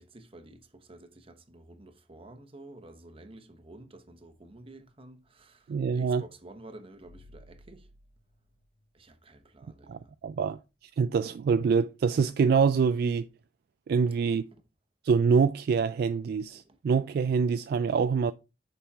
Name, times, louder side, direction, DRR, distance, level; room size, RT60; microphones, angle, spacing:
voice 1, 0.0-7.9 8.9-10.1 14.0-14.6 16.5-16.8, right 2 dB, 30° right, 1.0 m, -51 dB
sound 1, 4.2-5.4 6.9-9.5 10.0-10.1 13.1-13.3, equal, 45° left, 1.1 m, -58 dB
voice 2, 5.7-6.2 9.9-10.6 11.0-13.3 13.9-14.4 15.0-18.3, right 5 dB, 60° right, 0.3 m, -25 dB
7.1 x 5.4 x 3.5 m
head